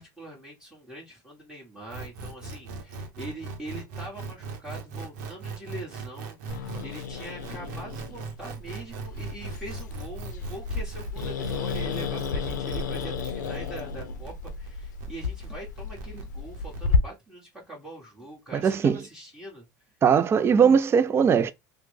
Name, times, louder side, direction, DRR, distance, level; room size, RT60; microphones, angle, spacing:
voice 1, 0.0-19.7, right 1 dB, 5° right, 1.4 m, -43 dB
sound 1, 1.9-16.8, right 4 dB, 70° right, 0.8 m, -39 dB
Growling, 6.5-17.0, left 5 dB, 90° left, 0.5 m, -32 dB
voice 2, 18.5-19.0 20.0-21.5, right 7 dB, 25° right, 0.4 m, -20 dB
3.1 x 2.1 x 3.2 m
hypercardioid pair, 90°, 10 cm